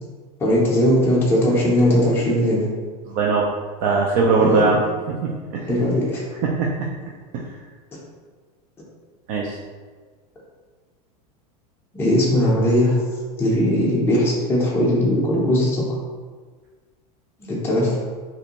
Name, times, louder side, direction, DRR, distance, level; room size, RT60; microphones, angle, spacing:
voice 1, 0.4-2.6 4.4-4.7 5.7-6.2 11.9-13.0 13.4-15.9 17.4-18.0, left 1 dB, 10° left, -6 dB, 0.6 m, -19 dB
voice 2, 3.1-3.5 3.8-4.8 5.1-5.7 6.4-6.9 7.3-7.4 9.3-9.6, right 4 dB, 50° right, -2 dB, 0.4 m, -20 dB
2.6 x 2.1 x 2.8 m, 1.5 s
hypercardioid pair, 115°, 20 cm